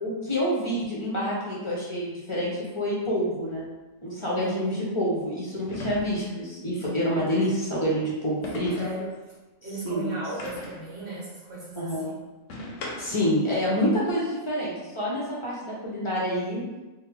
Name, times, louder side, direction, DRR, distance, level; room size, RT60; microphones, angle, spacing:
voice 1, 0.0-3.6 4.0-8.7 9.8-10.2 11.8-12.1 13.0-16.6, equal, 30° left, -6 dB, 0.6 m, -27 dB
sound 1, 3.5-3.6 5.7-6.4 8.4-9.0 10.4-10.9 12.5-13.3, left 1 dB, 70° left, 0.9 m, -38 dB
voice 2, 4.4-5.0 8.8-9.1 9.6-12.1, right 3 dB, 50° right, -8 dB, 1.5 m, -36 dB
3.5 x 2.1 x 3.3 m, 1.1 s
omnidirectional pair, 1.4 m